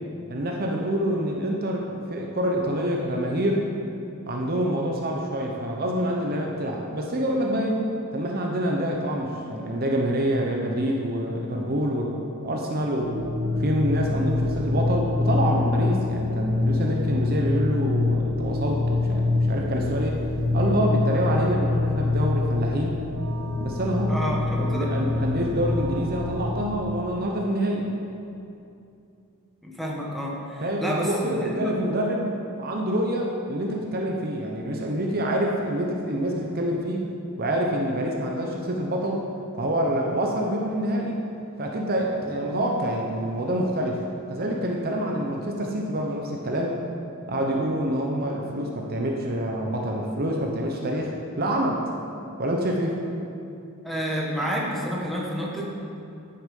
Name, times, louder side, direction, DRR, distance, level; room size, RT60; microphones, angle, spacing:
voice 1, 0.3-3.6 4.3-7.8 8.1-13.1 13.6-20.2 20.5-23.0 23.6-24.1 24.5-27.9 30.6-32.3 32.6-37.1 37.4-39.3 39.6-41.2 41.6-46.8 47.3-51.1 51.4-51.8 52.4-53.0, right 1 dB, 45° right, 0 dB, 0.8 m, -26 dB
sound 1, 13.0-26.5, left 2 dB, 65° right, 1.3 m, -25 dB
voice 2, 24.1-24.9 29.6-31.7 53.8-55.7, equal, ahead, -4 dB, 1.4 m, -29 dB
10.5 x 7.0 x 5.4 m, 2.7 s
head